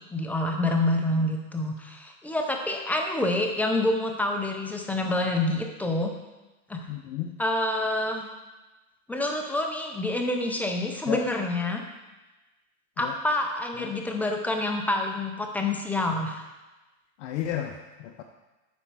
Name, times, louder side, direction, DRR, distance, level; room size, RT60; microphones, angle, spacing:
voice 1, 0.0-6.1 6.7-6.9 7.4-8.3 9.1-11.8 13.0-16.4, left 2 dB, 5° left, 2 dB, 0.3 m, -27 dB
voice 2, 6.9-7.4 11.1-11.2 13.0-13.2 13.8-14.0 17.2-18.2, left 11 dB, 60° left, 4 dB, 0.7 m, -33 dB
8.1 x 4.4 x 4.6 m, 1.1 s
supercardioid pair, 125°, 41 cm